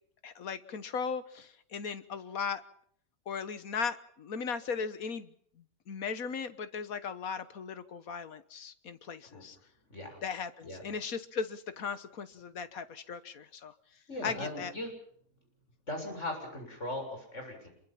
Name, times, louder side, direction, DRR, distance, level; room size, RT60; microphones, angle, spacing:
voice 1, 0.2-2.6 3.3-5.3 5.9-9.6 10.2-13.7 14.2-14.7, left 5 dB, 75° left, 12 dB, 1.7 m, -37 dB
voice 2, 14.1-14.9 15.9-17.7, left 1 dB, 55° left, 3 dB, 7.4 m, -39 dB
26.0 x 23.0 x 5.8 m, 0.65 s
omnidirectional pair, 1.5 m